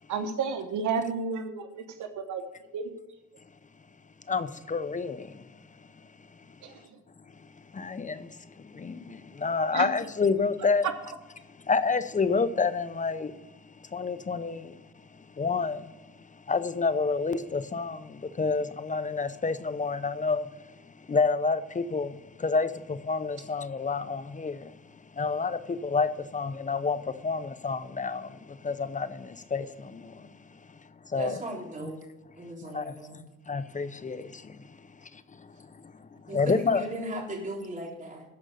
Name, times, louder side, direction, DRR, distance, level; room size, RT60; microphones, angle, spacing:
voice 1, 0.1-2.4 2.7-2.9 6.6-6.7 9.7-9.8, right 5 dB, 75° right, 1.1 m, -31 dB
voice 2, 4.3-5.2 7.8-8.1 8.8-8.9 9.4-10.9 11.7-13.3 13.9-14.6 15.4-15.8 16.5-18.0 18.4-20.4 21.1-22.1 22.4-22.7 23.1-24.5 25.2-26.1 26.3-27.0 27.2-28.2 28.6-29.1 29.5-29.6 31.1-31.4 32.7-32.8 33.5-34.2 36.3-36.8, left 4 dB, 25° left, 0.7 m, -27 dB
voice 3, 31.2-32.0 32.4-33.2 36.3-38.2, right 1 dB, 25° right, 3.7 m, -37 dB
13.5 x 5.2 x 6.4 m
cardioid pair, 90°, 30 cm